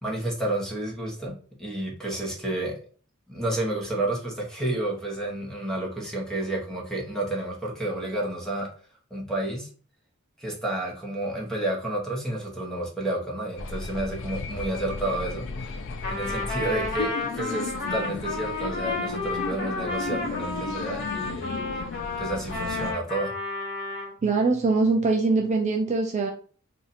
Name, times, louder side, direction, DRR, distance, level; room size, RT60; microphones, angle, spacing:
voice 1, 0.0-2.8 3.3-8.7 9.1-9.7 10.4-15.8 16.1-21.6 22.2-23.3, right 1 dB, 5° left, -1 dB, 0.9 m, -30 dB
sound 1, 13.6-22.9, left 4 dB, 60° left, 0.4 m, -35 dB
Trumpet, 16.0-24.1, left 2 dB, 45° left, 1.2 m, -32 dB
voice 2, 24.2-26.3, right 3 dB, 35° right, 2 dB, 0.4 m, -22 dB
2.7 x 2.4 x 4.1 m, 0.42 s
head